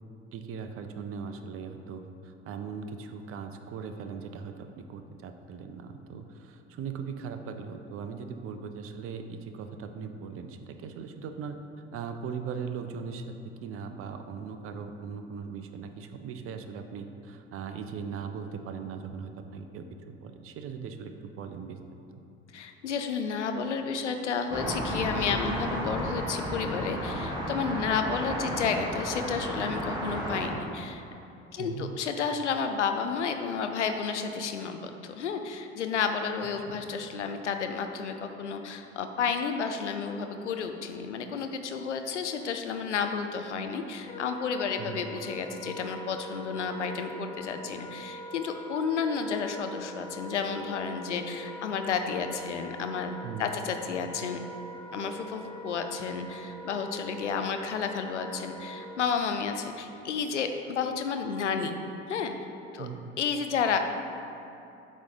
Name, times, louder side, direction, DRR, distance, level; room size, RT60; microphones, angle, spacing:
voice 1, 0.3-11.6 11.9-13.3 13.6-19.9 20.2-21.8 31.6-32.0 36.7-36.8 44.8-45.1 53.2-53.6 62.8-63.2, right 6 dB, 40° right, 7 dB, 0.6 m, -39 dB
voice 2, 22.5-31.0 31.5-53.1 53.4-54.4 54.9-61.8 62.1-62.3 62.7-62.9 63.2-63.8, left 6 dB, 85° left, 6 dB, 0.5 m, -31 dB
sound 1, 24.5-30.5, equal, 10° right, 1.3 m, -32 dB
Wind instrument woodwind instrument, 44.0-59.0, equal, 15° left, 0.6 m, -43 dB
8.3 x 3.1 x 5.2 m, 2.7 s
figure-of-eight pair, 60°, 34 cm